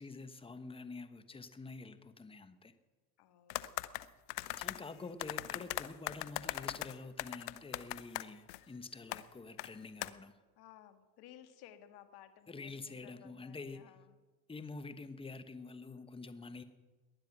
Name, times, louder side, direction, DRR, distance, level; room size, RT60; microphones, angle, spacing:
voice 1, 0.0-2.7 4.6-10.4 12.5-13.8 14.5-16.6, left 3 dB, 10° left, 11 dB, 1.2 m, -47 dB
voice 2, 3.2-4.0 10.6-14.2, left 10 dB, 55° left, 9 dB, 1.9 m, -58 dB
sound 1, 3.5-4.8 5.2-8.6 9.1-9.2 9.6-9.7 10.0-10.1, left 17 dB, 80° left, 0.9 m, -39 dB
19.5 x 11.0 x 6.0 m, 1.3 s
supercardioid pair, 100°, 46 cm